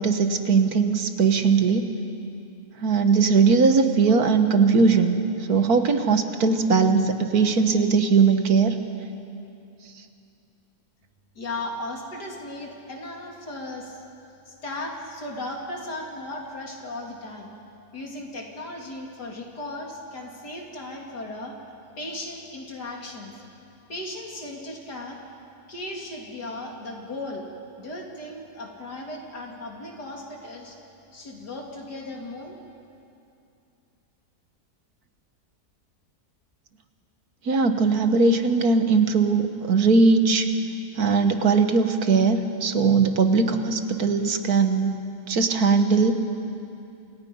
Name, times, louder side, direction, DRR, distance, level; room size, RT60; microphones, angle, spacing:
voice 1, 0.0-1.9 2.8-5.2 5.5-8.8 37.5-40.5 41.0-45.0 45.3-46.1, right 4 dB, 65° right, 7 dB, 1.8 m, -20 dB
voice 2, 11.4-14.0 14.5-17.5 17.9-21.5 22.0-23.3 23.9-25.2 25.7-27.5 27.8-30.8 31.1-32.6, left 1 dB, 85° left, 0 dB, 3.7 m, -36 dB
29.0 x 27.0 x 5.5 m, 2.7 s
omnidirectional pair, 1.7 m